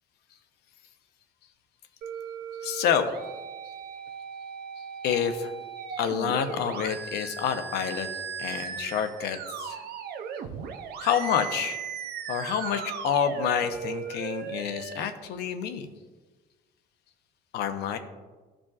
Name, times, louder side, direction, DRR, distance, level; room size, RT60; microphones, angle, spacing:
sound 1, 2.0-15.0, right 7 dB, 70° right, 0.7 m, -37 dB
voice 1, 2.6-3.1 5.0-5.5 6.0-8.1 8.4-9.8 11.0-11.8 12.3-15.9 17.5-18.0, left 8 dB, 75° left, 8 dB, 0.8 m, -28 dB
14.0 x 5.0 x 2.4 m, 1.3 s
cardioid pair, 110°, 17 cm